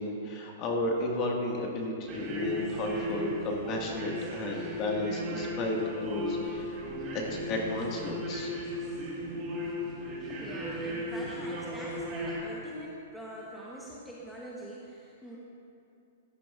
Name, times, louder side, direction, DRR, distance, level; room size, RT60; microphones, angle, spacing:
voice 1, 0.0-6.8 7.1-8.5, left 1 dB, 30° left, -1 dB, 1.7 m, -33 dB
sound 1, 2.1-12.4, equal, 25° right, 2.2 m, -36 dB
voice 2, 10.3-15.4, equal, ahead, -6 dB, 1.0 m, -43 dB
15.5 x 10.5 x 2.5 m, 2.8 s
hypercardioid pair, 155°, 0 cm